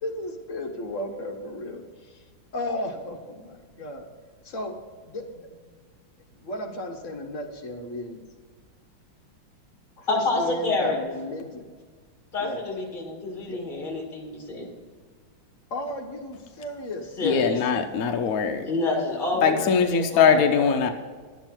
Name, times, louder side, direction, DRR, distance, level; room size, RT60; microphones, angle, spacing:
voice 1, 0.0-2.2 2.5-4.0 4.4-4.7 5.0-5.5 6.4-8.2 10.0-11.6 12.4-12.6 13.5-13.6 15.7-17.1 17.5-18.2, left 1 dB, 45° left, 2 dB, 1.4 m, -35 dB
voice 2, 10.1-11.0 12.3-14.7 17.2-17.6 18.6-20.7, left 2 dB, 25° left, 0 dB, 2.1 m, -28 dB
voice 3, 17.2-18.6 19.4-20.9, left 6 dB, 65° left, 5 dB, 0.9 m, -21 dB
11.5 x 8.3 x 4.4 m, 1.5 s
omnidirectional pair, 2.2 m